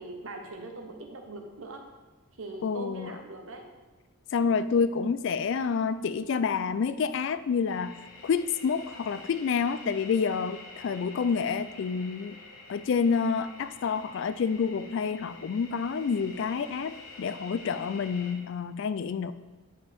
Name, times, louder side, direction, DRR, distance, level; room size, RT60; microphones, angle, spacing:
voice 1, 0.0-1.8 2.4-3.6, right 2 dB, 65° right, 3 dB, 1.0 m, -41 dB
voice 2, 2.6-3.2 4.3-8.0 8.2-12.4 12.7-19.3, left 5 dB, 55° left, 14 dB, 0.3 m, -28 dB
sound 1, 7.7-18.3, left 2 dB, 75° left, 1.1 m, -48 dB
10.0 x 5.6 x 3.5 m, 1.2 s
head